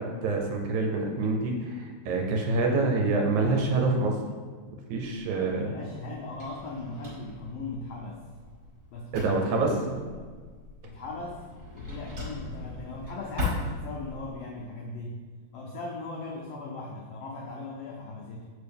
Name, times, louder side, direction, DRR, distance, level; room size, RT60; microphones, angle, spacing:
voice 1, 0.0-4.2 4.9-5.7 9.1-10.0, right 3 dB, 75° right, 2 dB, 2.0 m, -26 dB
Drawer open or close, 5.0-14.3, left 2 dB, 30° right, 2.0 m, -39 dB
voice 2, 5.5-8.2 8.9-9.8 10.8-11.4 11.7-15.2 15.5-18.5, left 2 dB, 90° left, -1 dB, 1.3 m, -38 dB
6.9 x 4.6 x 3.4 m, 1.5 s
omnidirectional pair, 3.6 m